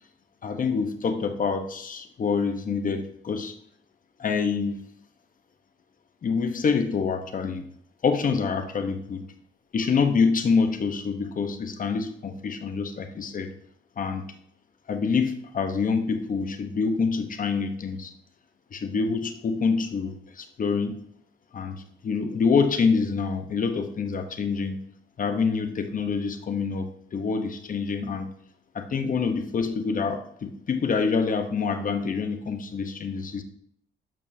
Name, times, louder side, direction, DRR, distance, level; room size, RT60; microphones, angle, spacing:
voice 1, 0.4-3.6 4.2-4.8 6.2-7.7 8.0-9.2 9.7-13.5 14.0-14.3 14.9-18.1 18.7-21.0 21.5-24.8 25.2-28.3 28.7-33.4, left 5 dB, 45° left, 7 dB, 1.0 m, -26 dB
12.5 x 5.4 x 2.8 m, 0.70 s
cardioid pair, 90°, 20 cm